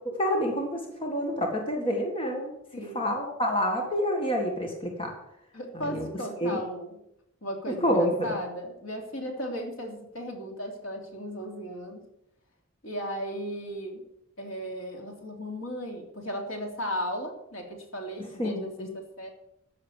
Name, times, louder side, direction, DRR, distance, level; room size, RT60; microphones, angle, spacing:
voice 1, 0.1-2.5 2.9-5.1 5.9-6.1 6.4-6.6 7.8-8.4 18.4-18.9, equal, 25° left, 1 dB, 1.9 m, -28 dB
voice 2, 2.7-3.1 5.5-7.0 7.4-12.0 12.8-14.0 14.4-19.3, equal, 65° left, 2 dB, 3.1 m, -36 dB
14.0 x 6.5 x 8.2 m, 0.79 s
head